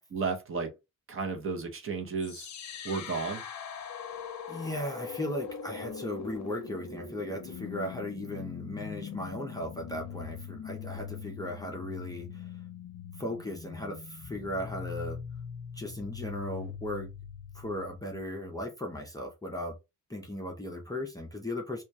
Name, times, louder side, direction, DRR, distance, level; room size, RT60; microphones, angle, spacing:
voice 1, 0.1-0.7 1.1-2.5 2.8-3.4, right 4 dB, 40° right, 0.6 m, -33 dB
sound 1, 2.2-18.2, left 7 dB, 60° left, 0.5 m, -42 dB
voice 2, 4.5-12.5 13.2-15.2 15.7-17.1 17.5-19.7 20.1-21.8, left 1 dB, 10° left, 0.4 m, -37 dB
2.3 x 2.1 x 2.6 m
wide cardioid pair, 150°, 32 cm